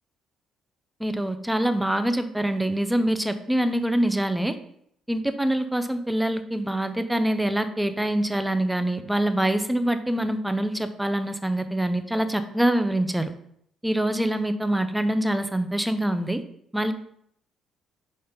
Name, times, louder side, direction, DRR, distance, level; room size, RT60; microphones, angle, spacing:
voice 1, 1.0-4.5 5.1-13.3 13.8-16.4 16.7-16.9, right 1 dB, 5° right, 10 dB, 0.5 m, -25 dB
5.2 x 4.4 x 5.0 m, 0.70 s
cardioid pair, 155°, 0 cm